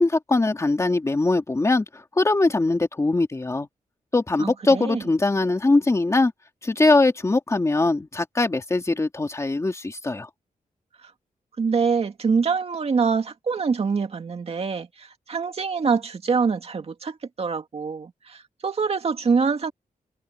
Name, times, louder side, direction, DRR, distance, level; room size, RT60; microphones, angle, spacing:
voice 1, 0.0-3.7 4.1-6.3 6.6-10.3, left 2 dB, 20° left, 2.5 m, -21 dB
voice 2, 4.4-5.0 11.6-19.7, right 5 dB, 45° right, 2.3 m, -25 dB
wide cardioid pair, 180°, 15 cm